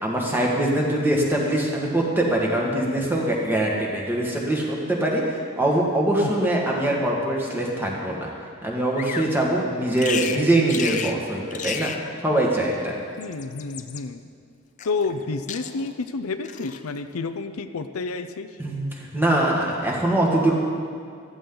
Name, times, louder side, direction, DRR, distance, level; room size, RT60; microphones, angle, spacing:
voice 1, 0.0-8.3 8.6-11.9 12.2-12.9 18.6-20.5, right 1 dB, 10° right, -2 dB, 1.7 m, -23 dB
Bird vocalization bird call bird song, 9.0-9.3 10.0-10.4 10.7-11.2 11.5-12.0 13.0-14.0 14.8-15.2 15.5-16.0 16.4-16.8, left 8 dB, 35° left, 0.5 m, -32 dB
voice 2, 13.2-14.2 14.8-18.5, left 4 dB, 85° left, 9 dB, 0.6 m, -30 dB
15.0 x 13.5 x 3.9 m, 2.3 s
head